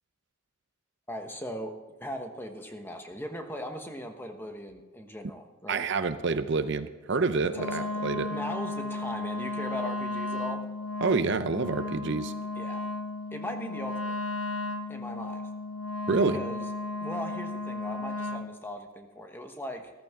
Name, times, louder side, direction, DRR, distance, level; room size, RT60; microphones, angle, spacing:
voice 1, 1.1-5.8 7.4-10.7 12.6-12.9 13.3-14.2 14.9-15.5 16.1-16.6 17.0-19.9, equal, 10° left, 5 dB, 1.1 m, -39 dB
voice 2, 5.7-8.3 11.0-12.3 16.1-16.4, right 4 dB, 55° right, 11 dB, 0.6 m, -27 dB
Wind instrument woodwind instrument, 7.5-18.5, left 2 dB, 90° left, 1.1 m, -34 dB
14.0 x 14.0 x 3.7 m, 1.3 s
head